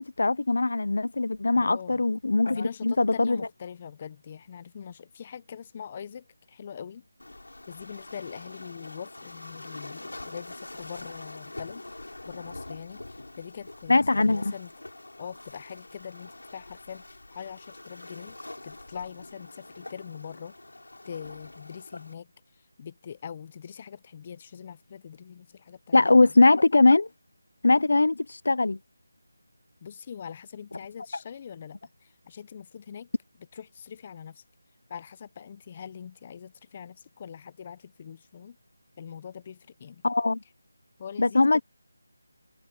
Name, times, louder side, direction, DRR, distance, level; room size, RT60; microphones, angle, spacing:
voice 1, 0.0-3.4 13.9-14.5 25.9-27.1 27.6-28.8 40.0-40.4 41.2-41.6, left 3 dB, 65° left, 0.5 m, -21 dB
voice 2, 1.5-2.1 2.5-7.0 7.7-11.8 12.2-14.7 15.2-18.4 18.6-20.6 21.0-26.3 29.8-33.1 33.5-34.4 34.9-38.6 39.0-40.0 41.0-41.6, left 7 dB, 30° left, 0.7 m, -43 dB
Waves surf, 7.2-22.1, left 2 dB, 90° left, 6.2 m, -45 dB
figure-of-eight pair, 170°, 0 cm